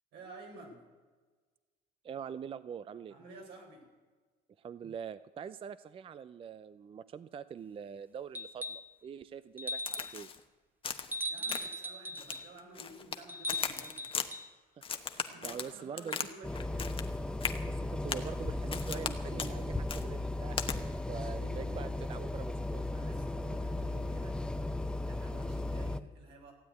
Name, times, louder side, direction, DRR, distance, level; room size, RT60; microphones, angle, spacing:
voice 1, 0.1-0.8 3.1-3.9 11.3-14.1 15.1-17.0 21.1-21.9 22.9-24.4 25.1-26.5, right 1 dB, 80° right, 1 dB, 4.4 m, -52 dB
voice 2, 2.0-3.1 4.6-10.3 14.8-16.2 17.6-22.8, right 7 dB, 35° right, 15 dB, 0.4 m, -44 dB
sound 1, 8.3-8.9 9.6-10.2 11.1-12.5 13.3-14.5 16.1-16.2, left 1 dB, 10° right, 1.0 m, -39 dB
Crack, 9.9-10.4 10.8-11.2 11.5-11.9 12.2-13.2 13.5-14.3 14.8-16.3 16.6-17.1 17.4-17.6 18.1-18.3 18.7-19.1 19.4-19.5 19.9-20.0 20.6-20.8, left 6 dB, 30° left, 1.1 m, -37 dB
sound 2, 16.4-26.0, left 2 dB, 5° left, 0.6 m, -36 dB
15.5 x 8.6 x 9.4 m, 1.4 s
cardioid pair, 110°, 17 cm